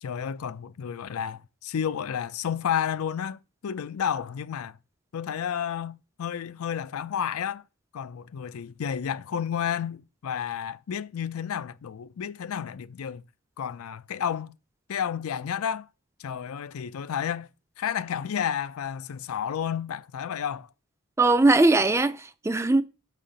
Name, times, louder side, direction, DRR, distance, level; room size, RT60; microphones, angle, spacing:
voice 1, 0.0-4.8 5.1-7.6 7.9-13.2 13.6-14.5 14.9-15.9 16.2-17.5 17.8-20.7, left 8 dB, 90° left, 0.4 m, -31 dB
voice 2, 21.2-22.8, right 2 dB, 15° right, 0.3 m, -20 dB
6.2 x 4.2 x 5.0 m
head